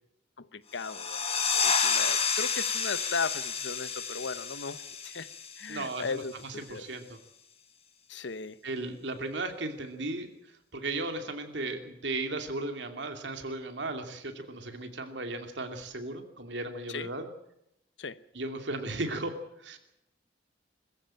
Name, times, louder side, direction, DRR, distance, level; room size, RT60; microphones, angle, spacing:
voice 1, 0.4-5.3 5.6-6.8 8.1-8.6 16.9-17.1 18.0-18.2, left 4 dB, 85° left, 0.9 m, -37 dB
sound 1, 0.7-6.1, left 6 dB, 35° left, 2.0 m, -30 dB
voice 2, 5.7-6.2 6.6-7.2 8.6-10.3 10.7-17.3 18.3-19.8, right 2 dB, 80° right, 2.6 m, -36 dB
22.0 x 15.0 x 8.9 m
head